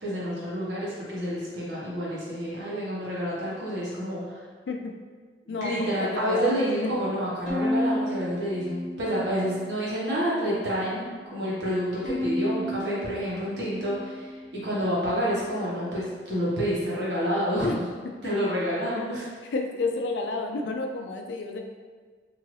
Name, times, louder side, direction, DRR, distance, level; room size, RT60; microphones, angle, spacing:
voice 1, 0.0-4.4 5.5-17.8 18.2-19.2, equal, 75° right, -7 dB, 1.1 m, -29 dB
voice 2, 5.5-6.9 17.6-17.8 19.0-19.1 19.5-21.6, left 3 dB, 80° left, 3 dB, 0.4 m, -30 dB
Bowed string instrument, 7.5-9.8 10.3-11.1 12.0-14.6, equal, 40° left, 0.8 m, -32 dB
3.1 x 2.7 x 2.5 m, 1.5 s
head